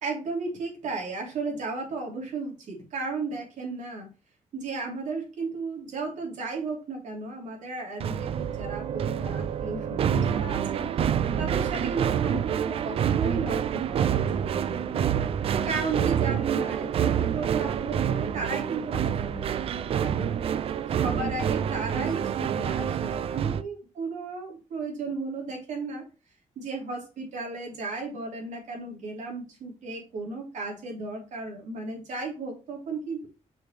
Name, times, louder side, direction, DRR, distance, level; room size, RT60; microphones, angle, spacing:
voice 1, 0.0-4.1 4.5-10.8 11.4-15.1 15.6-20.4 20.9-26.0 26.6-33.3, right 3 dB, 75° right, -1 dB, 3.4 m, -34 dB
sound 1, 8.0-23.6, right 9 dB, 50° right, 0.4 m, -27 dB
6.6 x 6.2 x 3.2 m, 0.30 s
wide cardioid pair, 180°, 13 cm